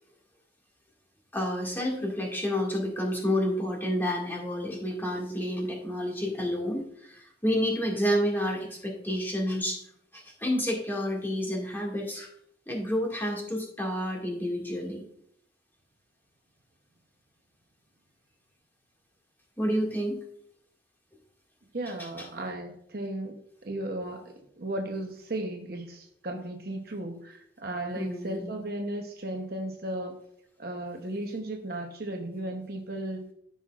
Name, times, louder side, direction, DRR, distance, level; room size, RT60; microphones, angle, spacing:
voice 1, 1.3-9.8 10.1-12.3 12.7-15.0 19.6-20.2 27.9-28.5, equal, 10° left, -1 dB, 1.9 m, -29 dB
voice 2, 21.7-23.3 23.6-30.2 30.6-33.3, right 1 dB, 55° right, 3 dB, 0.8 m, -35 dB
14.5 x 5.6 x 2.4 m, 0.69 s
head